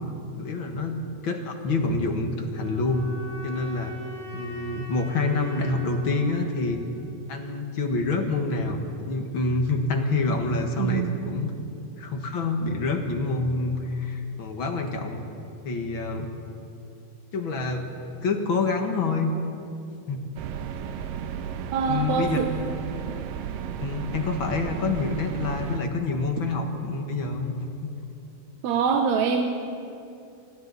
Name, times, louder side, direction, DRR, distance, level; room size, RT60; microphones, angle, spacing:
voice 1, 0.4-3.0 3.4-4.0 4.3-6.8 7.3-8.8 9.1-11.5 12.0-15.2 15.6-16.3 17.3-17.9 18.2-19.3 20.1-20.2 21.9-22.4 23.8-27.5 27.8-27.9, left 3 dB, 45° left, 4 dB, 1.8 m, -27 dB
sound 1, 2.5-7.5, left 1 dB, 20° left, 7.1 m, -42 dB
voice 2, 10.8-11.2 21.7-22.5 28.6-29.5, right 6 dB, 65° right, 3 dB, 2.1 m, -24 dB
sound 2, 20.4-25.8, right 8 dB, 90° right, 2.6 m, -34 dB
28.5 x 25.0 x 4.1 m, 2.7 s
omnidirectional pair, 3.8 m